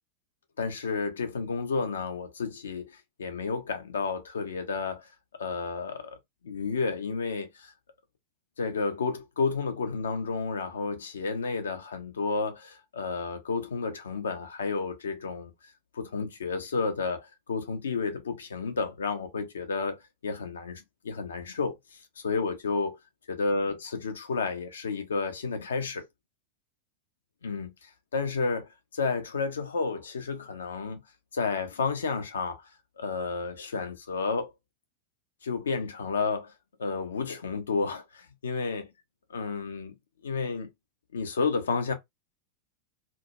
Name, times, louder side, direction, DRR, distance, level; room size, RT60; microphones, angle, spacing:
voice 1, 0.6-5.1 5.4-6.2 6.4-7.7 8.6-15.5 15.9-21.8 22.2-23.0 23.3-26.1 27.4-31.0 31.3-32.7 33.0-34.5 35.4-36.5 36.8-38.9 39.3-39.9 40.2-40.7 41.1-41.9, left 4 dB, 70° left, 0.5 m, -31 dB
2.2 x 2.1 x 2.7 m
figure-of-eight pair, 90°, 0 cm